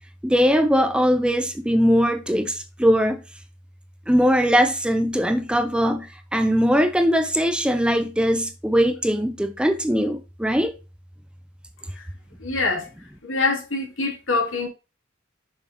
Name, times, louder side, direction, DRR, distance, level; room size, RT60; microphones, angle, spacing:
voice 1, 0.2-3.2 4.1-10.7, equal, 5° right, 0.6 m, -20 dB
voice 2, 12.4-12.9 13.2-14.7, left 3 dB, 70° left, 3.1 m, -24 dB
7.1 x 6.2 x 3.0 m
head